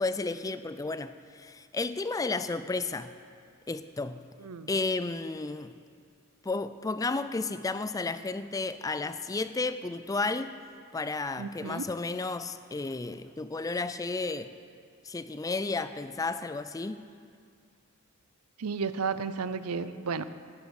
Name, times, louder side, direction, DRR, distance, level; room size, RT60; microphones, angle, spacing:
voice 1, 0.0-3.1 3.7-4.2 4.7-5.8 6.4-10.6 10.9-14.6 15.0-17.0, left 3 dB, 15° left, 12 dB, 0.4 m, -32 dB
voice 2, 11.4-11.9 18.6-20.2, right 5 dB, 85° right, 13 dB, 0.6 m, -33 dB
13.5 x 10.5 x 6.4 m, 2.3 s
head